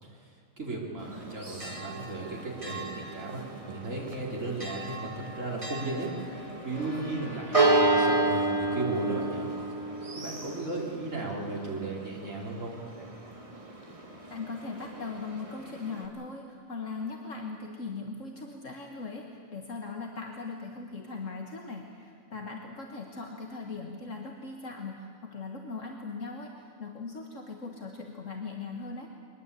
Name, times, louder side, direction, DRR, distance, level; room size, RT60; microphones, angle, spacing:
voice 1, 0.0-9.5 10.1-12.8, right 2 dB, 65° right, -2 dB, 4.0 m, -36 dB
Church bell, 1.0-16.1, right 2 dB, 25° right, 2.0 m, -32 dB
voice 2, 14.3-29.1, left 4 dB, 65° left, 1 dB, 1.9 m, -39 dB
23.0 x 19.5 x 8.4 m, 2.1 s
omnidirectional pair, 1.4 m